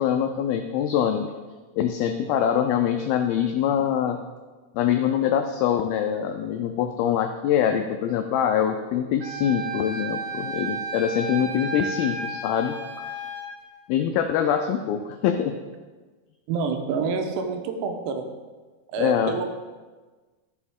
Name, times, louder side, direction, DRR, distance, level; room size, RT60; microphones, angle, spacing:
voice 1, 0.0-1.3 1.8-4.2 4.8-12.8 13.9-15.6 19.0-19.3, left 9 dB, 90° left, 6 dB, 2.1 m, -24 dB
Wind instrument woodwind instrument, 9.2-13.5, right 3 dB, 65° right, 3.8 m, -33 dB
voice 2, 16.5-18.3 18.9-19.5, right 5 dB, 85° right, 5 dB, 3.0 m, -27 dB
13.0 x 6.0 x 3.6 m, 1.3 s
omnidirectional pair, 4.8 m